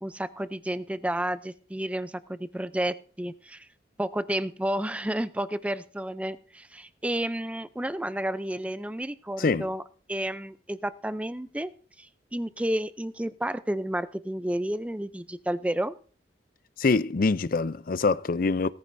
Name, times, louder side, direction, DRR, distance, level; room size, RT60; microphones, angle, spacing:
voice 1, 0.0-3.7 4.0-9.8 10.1-11.7 12.0-15.9, right 1 dB, 10° right, 0.5 m, -31 dB
voice 2, 9.4-9.7 16.8-18.7, left 3 dB, 50° left, 0.5 m, -24 dB
18.0 x 14.0 x 2.6 m
head